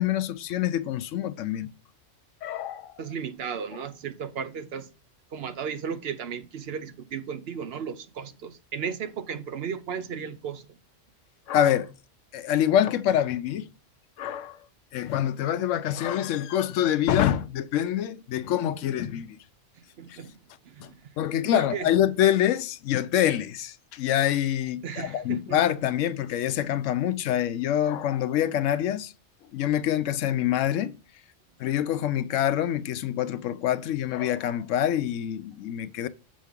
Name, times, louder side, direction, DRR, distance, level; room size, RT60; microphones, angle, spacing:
voice 1, 0.0-1.7 2.4-3.0 11.5-11.9 12.3-13.7 14.2-14.6 14.9-19.4 20.1-20.2 20.8-20.9 21.2-29.1 29.5-30.9 31.6-36.1, left 11 dB, 80° left, 0.9 m, -26 dB
voice 2, 3.0-4.9 5.3-10.8 20.0-20.4 20.6-21.0 21.5-21.9 24.8-25.6, right 7 dB, 60° right, 0.8 m, -35 dB
7.4 x 5.3 x 3.6 m
omnidirectional pair, 1.3 m